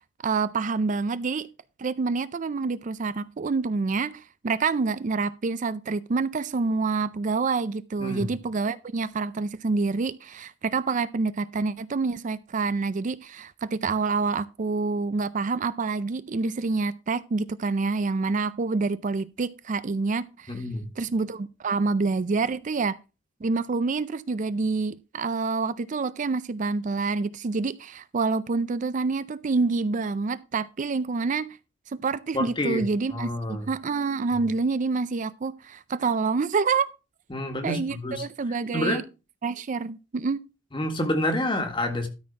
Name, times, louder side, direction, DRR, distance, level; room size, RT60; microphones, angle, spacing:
voice 1, 0.2-1.5 1.8-20.6 21.0-23.0 23.4-31.6 31.9-36.9 37.6-39.0 39.4-40.4, right 4 dB, 40° right, 0.4 m, -27 dB
voice 2, 8.0-8.3 20.5-20.9 32.3-33.7 34.3-34.4 37.3-38.3 38.7-39.0 40.7-42.1, left 1 dB, 25° left, 1.8 m, -28 dB
13.0 x 4.3 x 5.8 m
head